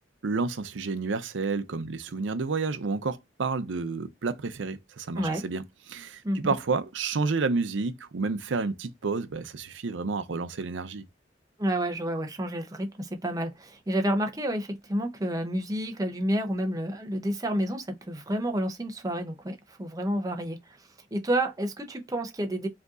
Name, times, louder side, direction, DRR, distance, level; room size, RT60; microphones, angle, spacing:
voice 1, 0.2-11.0, right 4 dB, 90° right, 0.6 m, -30 dB
voice 2, 6.2-6.5 11.6-20.6 21.1-22.7, right 1 dB, 20° right, 0.6 m, -29 dB
4.9 x 2.8 x 2.4 m
head